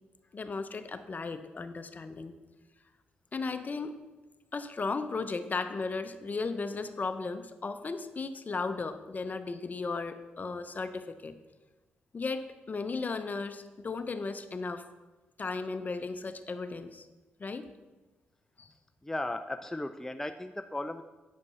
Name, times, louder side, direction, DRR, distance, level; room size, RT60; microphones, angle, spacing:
voice 1, 0.3-2.3 3.3-4.0 4.5-11.4 12.1-14.9 15.4-17.0 17.4-17.7 18.6-18.7, left 4 dB, 40° left, 10 dB, 0.7 m, -35 dB
voice 2, 19.0-21.0, left 1 dB, 10° left, 8 dB, 0.4 m, -36 dB
8.2 x 5.2 x 5.5 m, 1.2 s
supercardioid pair, 55°, 4 cm